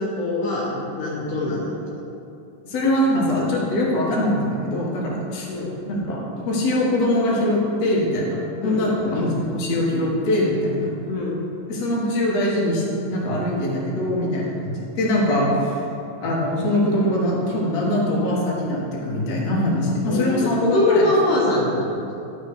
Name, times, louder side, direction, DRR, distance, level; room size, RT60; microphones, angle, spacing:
voice 1, 0.0-2.0 5.5-5.7 8.6-9.3 11.1-11.4 20.1-22.0, left 2 dB, 75° left, -5 dB, 2.7 m, -23 dB
voice 2, 2.6-5.5 5.9-10.9 11.7-15.8 16.2-21.0, left 1 dB, 55° left, -5 dB, 2.8 m, -22 dB
12.0 x 6.3 x 4.9 m, 2.7 s
omnidirectional pair, 3.8 m